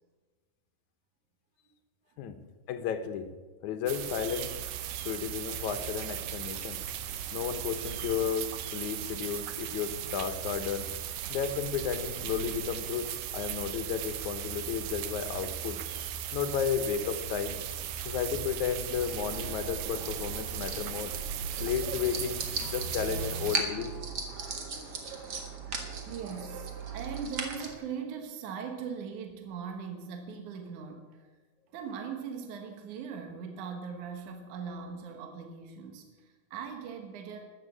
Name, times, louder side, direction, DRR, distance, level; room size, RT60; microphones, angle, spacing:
voice 1, 2.7-3.3 3.6-4.5 5.0-6.8 7.3-10.9 11.3-15.8 16.3-17.6 18.1-21.1 21.6-23.9, left 8 dB, 70° left, 9 dB, 2.3 m, -33 dB
sound 1, 3.9-23.6, right 9 dB, 85° right, 2.5 m, -37 dB
sound 2, 19.0-27.7, right 4 dB, 40° right, 1.6 m, -38 dB
voice 2, 26.1-31.3 31.7-37.4, right 6 dB, 70° right, 5 dB, 2.7 m, -40 dB
13.5 x 9.2 x 8.6 m, 1.4 s
omnidirectional pair, 3.8 m